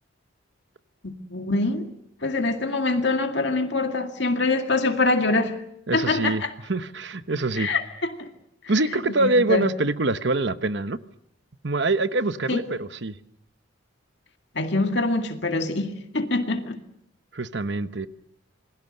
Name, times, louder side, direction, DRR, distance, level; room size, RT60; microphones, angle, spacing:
voice 1, 1.0-1.9 2.2-5.6 5.9-6.5 7.6-8.3 9.2-9.7 12.5-12.6 14.5-16.8, left 3 dB, 60° left, 2.2 m, -24 dB
voice 2, 5.9-6.4 6.7-7.7 8.7-11.0 11.6-13.2 17.3-18.1, right 2 dB, 55° right, 1.0 m, -24 dB
28.0 x 21.5 x 6.6 m
head